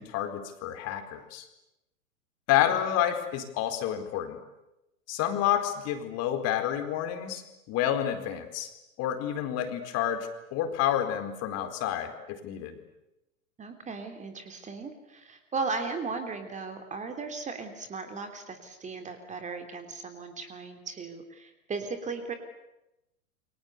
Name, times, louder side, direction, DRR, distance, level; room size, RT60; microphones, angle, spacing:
voice 1, 0.0-1.5 2.5-4.4 5.1-8.7 9.0-12.8, left 11 dB, 35° left, 7 dB, 4.4 m, -29 dB
voice 2, 2.7-3.0 13.6-22.3, right 4 dB, 15° right, 7 dB, 3.3 m, -37 dB
29.0 x 25.0 x 8.2 m, 0.91 s
figure-of-eight pair, 105°, 42 cm